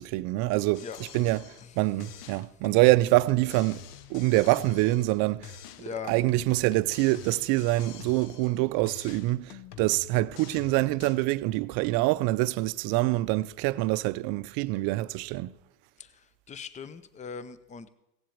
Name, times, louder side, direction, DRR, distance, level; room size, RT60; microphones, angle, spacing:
voice 1, 0.0-0.8 1.1-1.4 1.8-3.8 4.1-5.5 6.1-15.5, right 19 dB, 50° right, 0.6 m, -25 dB
sound 1, 0.7-1.7 2.0-5.2 5.4-8.6 8.9-11.2, left 8 dB, 75° left, 1.0 m, -46 dB
voice 2, 5.8-6.1 16.0-17.9, left 6 dB, 15° left, 0.7 m, -40 dB
17.0 x 7.5 x 8.6 m
hypercardioid pair, 105°, 48 cm